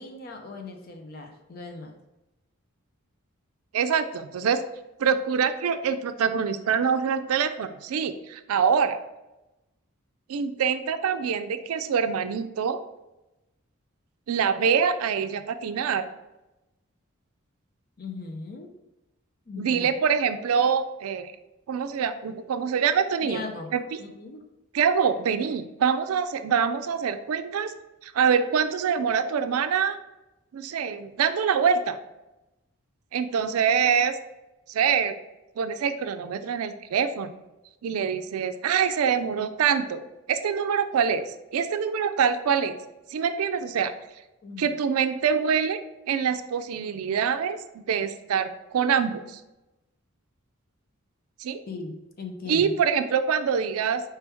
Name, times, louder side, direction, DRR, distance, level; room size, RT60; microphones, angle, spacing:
voice 1, 0.0-1.9 18.0-18.7 19.5-19.9 23.2-23.7 24.0-24.4 44.4-44.6 51.7-52.8, left 3 dB, 45° left, 4 dB, 0.5 m, -38 dB
voice 2, 3.7-4.6 5.0-9.0 10.3-12.8 14.3-16.1 19.6-21.3 21.7-23.4 23.7-24.0 24.7-27.7 28.0-30.0 30.5-32.0 33.1-34.2 34.7-35.1 35.6-37.3 37.8-40.0 40.3-41.3 41.5-42.8 43.1-43.9 44.6-45.8 46.1-49.4 51.4-51.6 52.5-54.0, right 7 dB, 90° right, 10 dB, 0.4 m, -25 dB
4.5 x 3.4 x 3.0 m, 0.97 s
head